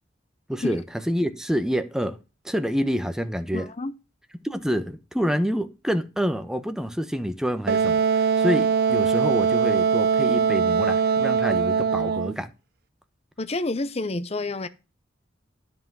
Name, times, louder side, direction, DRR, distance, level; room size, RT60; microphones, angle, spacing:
voice 1, 0.5-2.2 2.4-3.7 4.4-12.5, equal, 5° right, 0.9 m, -27 dB
voice 2, 3.5-3.9 13.4-14.7, left 2 dB, 35° left, 0.7 m, -29 dB
Wind instrument woodwind instrument, 7.7-12.4, right 6 dB, 55° right, 0.4 m, -21 dB
10.0 x 5.8 x 6.1 m
head